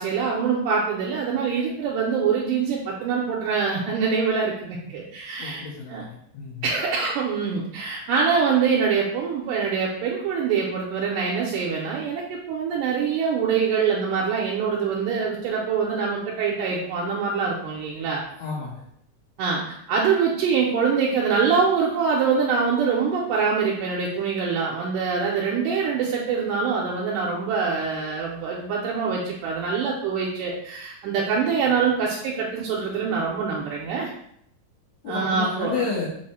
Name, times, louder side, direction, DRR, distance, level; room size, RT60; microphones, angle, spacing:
voice 1, 0.0-5.6 5.9-6.0 6.6-18.2 19.4-34.1 35.1-35.9, right 5 dB, 80° right, -3 dB, 2.1 m, -24 dB
voice 2, 5.4-6.7 18.4-18.9 35.0-36.1, left 5 dB, 70° left, -6 dB, 1.7 m, -31 dB
5.2 x 2.0 x 4.2 m, 0.70 s
omnidirectional pair, 3.8 m